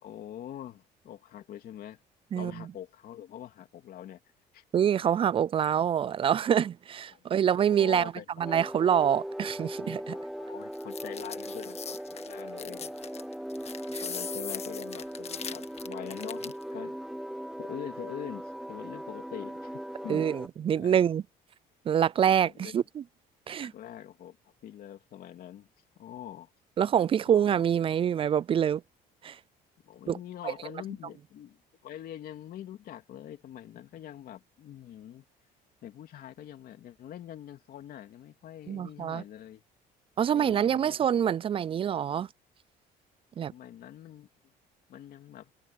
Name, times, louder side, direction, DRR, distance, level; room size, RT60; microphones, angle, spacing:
voice 1, 0.0-2.0 2.3-4.2 4.5-4.6 7.1-7.2 7.6-8.6 10.1-13.3 14.0-17.0 17.6-20.3 20.7-21.0 22.4-22.8 23.6-24.4 24.6-25.7 26.0-26.5 27.3-27.6 29.8-35.2 35.8-39.6 40.3-41.0 43.5-44.3 44.9-45.5, left 11 dB, 60° left, 3.0 m, -44 dB
voice 2, 2.3-2.6 4.7-8.1 8.4-10.2 13.9-14.0 20.1-21.2 21.9-23.0 23.5-23.7 26.8-28.8 29.2-29.4 30.1-30.2 38.7-39.2 40.2-42.3 43.4-43.5, right 9 dB, 35° right, 0.4 m, -26 dB
sound 1, 8.4-20.5, equal, ahead, 0.7 m, -39 dB
sound 2, 10.7-16.6, left 7 dB, 40° left, 1.7 m, -40 dB
cardioid pair, 110°, 17 cm